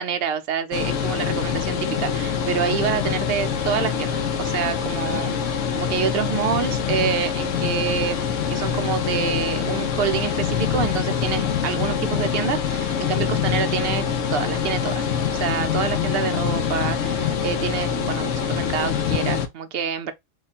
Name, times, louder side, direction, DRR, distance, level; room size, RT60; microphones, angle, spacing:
voice 1, 0.0-20.1, right 8 dB, 60° right, 0.7 m, -27 dB
sound 1, 0.7-19.5, left 7 dB, 75° left, 0.9 m, -25 dB
3.1 x 2.3 x 4.1 m
omnidirectional pair, 1.3 m